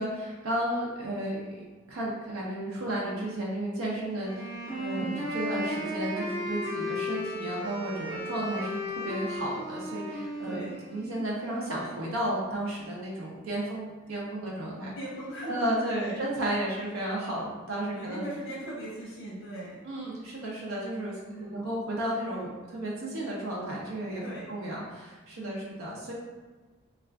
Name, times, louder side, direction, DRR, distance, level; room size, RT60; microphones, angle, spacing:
voice 1, 0.0-5.0 5.3-10.6 10.9-14.9 15.4-18.2 19.8-24.2 24.5-26.1, right 1 dB, 80° right, -4 dB, 0.6 m, -33 dB
Wind instrument woodwind instrument, 4.2-12.1, equal, 15° right, 0.9 m, -35 dB
voice 2, 4.9-5.2 10.5-10.8 15.0-16.2 16.7-17.0 17.9-19.9 21.3-21.6 24.2-24.5 25.4-25.7, right 1 dB, 80° left, -6 dB, 0.7 m, -39 dB
2.4 x 2.3 x 3.3 m, 1.3 s
head